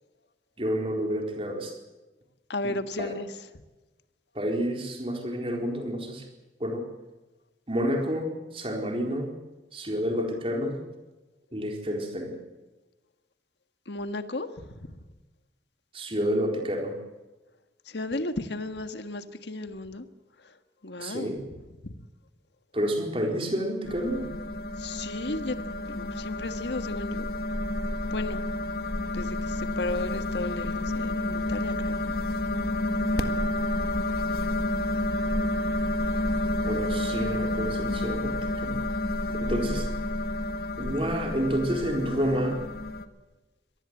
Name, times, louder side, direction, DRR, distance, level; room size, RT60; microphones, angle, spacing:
voice 1, 0.6-1.7 2.6-3.1 4.3-6.3 6.6-6.9 7.7-9.3 9.7-10.8 11.5-12.4 15.9-17.0 21.0-21.4 22.7-24.3 36.6-38.8 39.3-39.9 40.8-42.6, equal, 30° right, 2 dB, 4.1 m, -29 dB
voice 2, 2.5-3.3 13.9-14.7 17.9-20.1 20.4-20.5 20.8-21.4 21.8-21.9 24.8-25.6 25.8-27.3 28.1-28.4 29.1-32.1, left 2 dB, 75° left, 9 dB, 1.6 m, -34 dB
sound 1, 23.9-43.1, left 1 dB, 55° left, 1.6 m, -30 dB
25.0 x 19.0 x 7.9 m, 1.1 s
head